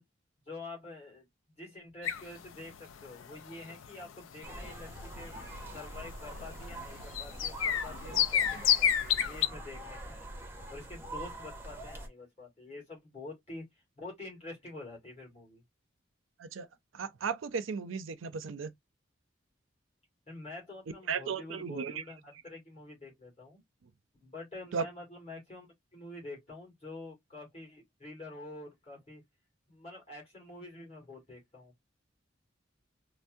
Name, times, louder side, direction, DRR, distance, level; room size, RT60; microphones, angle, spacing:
voice 1, 0.5-1.3 1.6-5.3 5.7-10.3 10.7-13.7 14.0-15.6 20.3-23.6 24.2-29.2 29.7-31.7, left 2 dB, 35° left, 2.1 m, -47 dB
sound 1, 2.0-9.5, left 9 dB, 90° left, 0.4 m, -32 dB
sound 2, 4.4-12.1, right 1 dB, 10° right, 0.6 m, -44 dB
voice 2, 16.9-18.7 21.1-22.0 24.7-24.9, right 5 dB, 85° right, 0.5 m, -35 dB
4.4 x 2.0 x 2.5 m
head